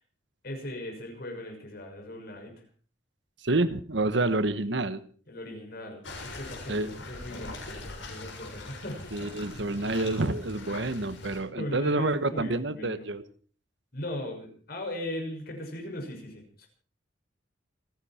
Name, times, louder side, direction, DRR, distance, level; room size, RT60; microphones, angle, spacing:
voice 1, 0.4-2.6 5.3-9.3 11.6-13.0 13.9-16.7, left 1 dB, 55° left, 3 dB, 6.2 m, -38 dB
voice 2, 3.4-5.0 6.7-6.9 9.1-13.2, right 2 dB, 65° right, 13 dB, 1.3 m, -28 dB
sound 1, 6.0-11.4, left 2 dB, 80° left, 7.1 m, -42 dB
28.5 x 10.5 x 4.4 m, 0.42 s
head